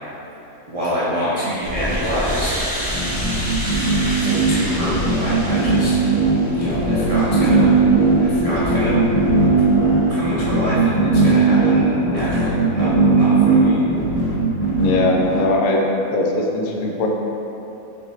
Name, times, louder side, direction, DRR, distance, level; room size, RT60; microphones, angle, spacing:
voice 1, 0.7-2.5 4.1-6.0 6.5-7.8 8.2-9.0 10.1-13.8, equal, 55° right, -9 dB, 0.4 m, -27 dB
sound 1, 1.6-10.1, left 2 dB, 20° left, 1.2 m, -27 dB
sound 2, 2.9-15.5, right 3 dB, 45° left, 0.8 m, -18 dB
voice 2, 14.8-15.8 16.1-17.1, left 2 dB, 85° left, 0 dB, 1.1 m, -20 dB
4.4 x 4.1 x 2.7 m, 2.9 s
omnidirectional pair, 1.5 m